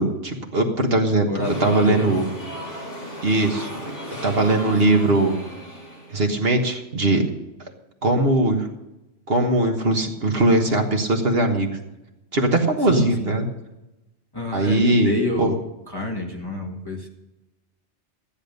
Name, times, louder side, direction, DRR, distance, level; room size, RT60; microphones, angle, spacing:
voice 1, 0.0-1.3 1.6-2.3 3.2-3.9 4.2-5.4 6.1-7.3 8.0-8.7 9.3-11.7 12.3-13.5 14.5-15.1 15.4-15.5, right 2 dB, 55° right, 3 dB, 1.6 m, -20 dB
voice 2, 1.3-2.2 4.7-5.0 12.9-13.3 14.3-15.6 15.9-17.1, left 1 dB, 20° left, -1 dB, 2.0 m, -28 dB
sound 1, 1.4-6.4, equal, 55° left, 6.0 m, -35 dB
14.0 x 10.5 x 5.3 m, 0.98 s
omnidirectional pair, 1.2 m